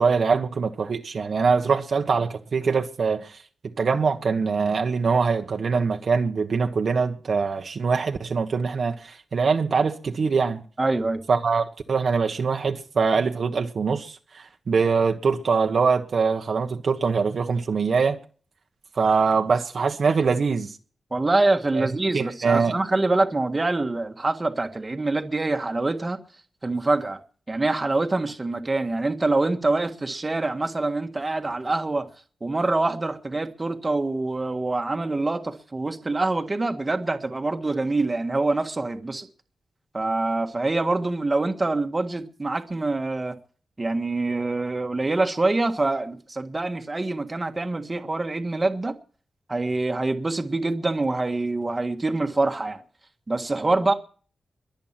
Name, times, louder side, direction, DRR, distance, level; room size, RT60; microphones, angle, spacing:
voice 1, 0.0-3.4 3.8-10.6 11.3-18.2 18.9-20.8 21.7-21.9 22.1-22.8, right 5 dB, 50° right, 1.3 m, -23 dB
voice 2, 10.8-11.2 21.1-26.2 26.6-27.2 27.5-32.1 32.4-39.3 39.9-43.4 43.8-49.0 49.5-52.8 53.3-53.9, right 2 dB, 20° right, 1.6 m, -25 dB
22.5 x 8.2 x 6.0 m
wide cardioid pair, 150°, 0 cm